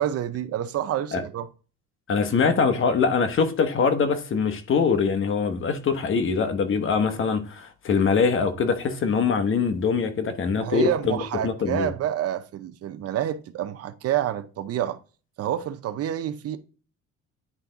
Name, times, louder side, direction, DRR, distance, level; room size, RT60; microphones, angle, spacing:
voice 1, 0.0-1.5 10.6-15.0 15.4-16.6, right 11 dB, 55° right, 0.6 m, -28 dB
voice 2, 2.1-11.2 11.4-11.9, left 5 dB, 45° left, 1.1 m, -23 dB
9.8 x 3.4 x 3.9 m
cardioid pair, 110°, 30 cm